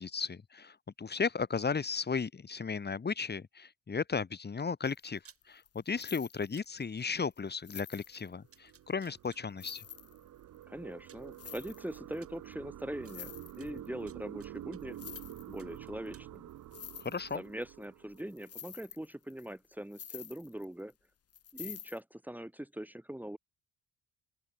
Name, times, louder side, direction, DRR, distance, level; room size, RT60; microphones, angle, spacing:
voice 1, 0.0-5.2 5.5-9.8 17.0-17.4, left 5 dB, 35° left, 2.5 m, -35 dB
sound 1, 4.8-5.1 5.3-6.8 7.3-7.4 7.6-8.8 9.2-9.3 9.6-10.6 11.2-12.2 12.5-12.6 12.8-13.9 14.8-15.8 16.1-16.2 16.5-17.8 18.1-20.9 21.3-22.0, left 8 dB, 50° left, 3.0 m, -48 dB
sound 2, 5.2-5.4 6.5-6.7 8.0-8.1 8.5-9.4 10.5-10.6 11.1-11.3 12.2-12.3 13.0-13.1 13.6-14.8 15.1-15.3 15.6-16.3, right 7 dB, 50° right, 6.0 m, -59 dB
sound 3, 8.1-18.6, right 12 dB, 75° right, 5.9 m, -49 dB
voice 2, 10.7-15.0 15.5-16.5 17.3-20.9 21.5-23.4, right 1 dB, 5° right, 2.2 m, -42 dB
open air
cardioid pair, 90°, 30 cm